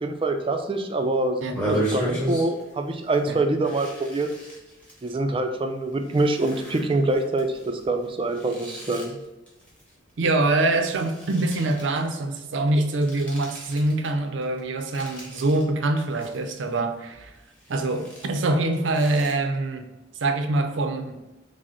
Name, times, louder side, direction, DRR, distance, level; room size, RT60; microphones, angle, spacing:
voice 1, 0.0-1.4 1.7-4.3 5.0-9.2, right 2 dB, 30° right, 5 dB, 0.4 m, -25 dB
sound 1, 1.5-2.7 3.1-3.2 3.6-5.1 5.7-10.5 10.7-12.0 12.8-14.1 14.4-15.6 16.0-16.8 17.1-19.3, right 1 dB, 5° left, 1.2 m, -35 dB
voice 2, 10.2-17.3 17.7-19.8 20.2-21.2, right 2 dB, 80° right, 7 dB, 0.5 m, -24 dB
4.9 x 2.1 x 4.3 m, 1.0 s
head